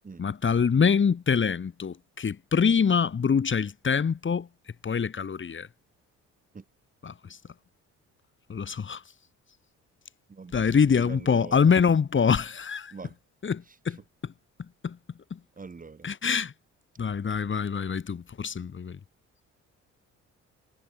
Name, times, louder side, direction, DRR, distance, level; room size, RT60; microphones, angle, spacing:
voice 1, 0.2-4.5 4.8-5.7 7.0-7.1 8.5-9.0 10.5-12.9 13.4-14.3 14.8-15.0 15.3-15.4 16.0-16.5 17.0-19.0, left 6 dB, 40° left, 2.9 m, -25 dB
voice 2, 10.3-10.6 11.0-11.7 12.9-13.1 15.6-16.1, right 4 dB, 30° right, 2.0 m, -43 dB
cardioid pair, 90°, 30 cm